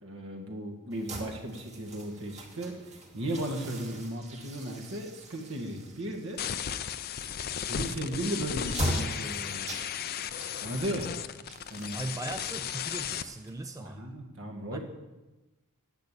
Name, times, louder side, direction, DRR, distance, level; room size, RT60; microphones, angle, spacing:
voice 1, 0.0-6.4 7.7-10.0 10.6-11.1 11.7-12.0 13.8-14.8, right 1 dB, 60° right, 3 dB, 1.9 m, -36 dB
sound 1, 0.9-14.0, right 1 dB, 30° right, 1.9 m, -41 dB
sound 2, 6.4-13.2, left 8 dB, 45° left, 0.5 m, -35 dB
voice 2, 11.9-14.0 14.7-14.8, right 2 dB, 15° right, 8 dB, 0.4 m, -38 dB
10.5 x 8.7 x 8.4 m, 1.1 s
head